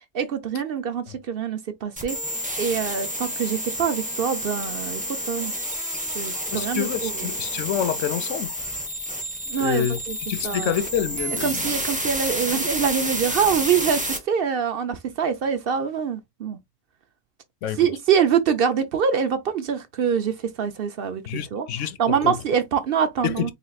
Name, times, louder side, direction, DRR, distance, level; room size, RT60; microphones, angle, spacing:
voice 1, 0.1-2.2 2.6-5.0 5.3-5.5 6.1-7.3 9.5-10.2 10.4-10.8 11.4-16.6 17.8-21.2 21.5-21.7 22.0-23.5, right 7 dB, 60° right, 0.7 m, -24 dB
sound 1, 2.0-14.2, equal, 5° right, 1.1 m, -29 dB
voice 2, 6.5-8.5 9.6-10.0 10.3-11.6 17.6-17.8 21.3-22.3 23.2-23.5, left 10 dB, 80° left, 1.0 m, -27 dB
4.3 x 4.0 x 2.3 m
omnidirectional pair, 1.3 m